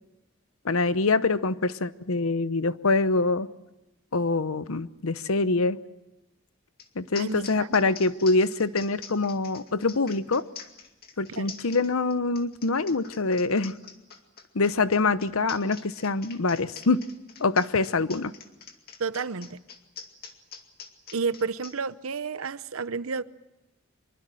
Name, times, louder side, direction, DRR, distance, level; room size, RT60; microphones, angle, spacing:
voice 1, 0.6-3.5 4.1-5.8 7.0-10.4 11.2-13.7 14.5-17.0 17.4-18.3, left 3 dB, 85° left, 0.9 m, -25 dB
sound 1, 6.8-6.9 7.1-21.7, left 7 dB, 45° left, 2.3 m, -45 dB
voice 2, 7.1-7.8 11.3-11.5 19.0-19.6 21.1-23.2, right 5 dB, 85° right, 0.8 m, -31 dB
25.0 x 23.0 x 7.6 m
head